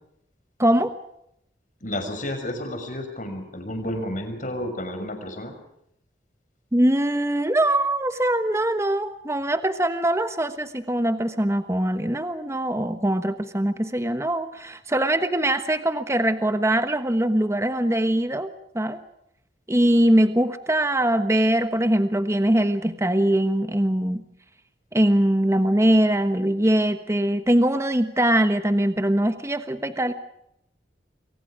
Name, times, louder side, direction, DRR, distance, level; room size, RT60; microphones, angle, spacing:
voice 1, 0.6-0.9 6.7-19.0 19.7-24.2 24.9-30.1, right 1 dB, 15° right, 9 dB, 1.3 m, -22 dB
voice 2, 1.8-5.5, left 1 dB, 45° left, 6 dB, 6.1 m, -31 dB
29.5 x 24.5 x 5.0 m, 0.78 s
head